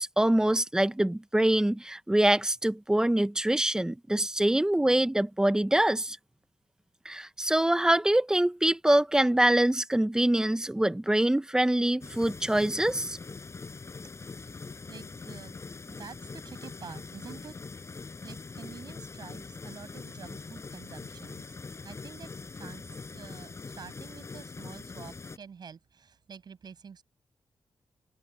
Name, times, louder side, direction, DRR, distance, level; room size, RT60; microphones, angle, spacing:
voice 1, 0.0-6.2 7.0-13.2, right 1 dB, 5° right, 0.8 m, -24 dB
sound 1, 12.0-25.4, left 4 dB, 30° left, 6.2 m, -43 dB
voice 2, 14.4-15.6 15.9-17.6 17.9-21.6 21.8-27.0, right 6 dB, 55° right, 6.3 m, -48 dB
wide cardioid pair, 145°, 9 cm